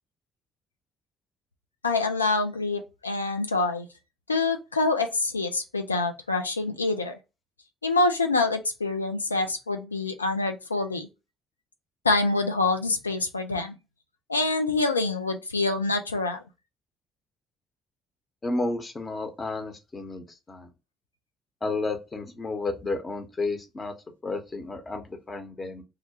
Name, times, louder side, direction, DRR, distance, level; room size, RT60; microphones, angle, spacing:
voice 1, 1.8-3.9 4.3-7.2 7.8-11.1 12.0-13.8 14.3-16.4, left 3 dB, 90° left, 0.3 m, -26 dB
voice 2, 18.4-20.7 21.6-23.9 24.2-25.0 25.3-25.8, left 3 dB, 30° left, 0.8 m, -32 dB
2.4 x 2.1 x 2.8 m
figure-of-eight pair, 50°, 0 cm